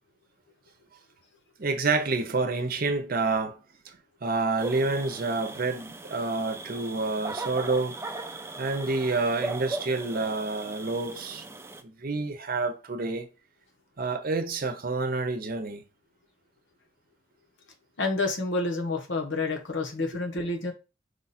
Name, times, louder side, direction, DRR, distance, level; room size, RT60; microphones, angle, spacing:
voice 1, 1.6-8.0 8.6-11.4 11.8-13.3 14.0-15.8, right 3 dB, 50° right, 0.7 m, -28 dB
sound 1, 4.6-11.8, right 2 dB, 15° right, 0.4 m, -38 dB
voice 2, 18.0-20.7, left 3 dB, 75° left, 1.2 m, -29 dB
4.9 x 2.5 x 4.2 m
head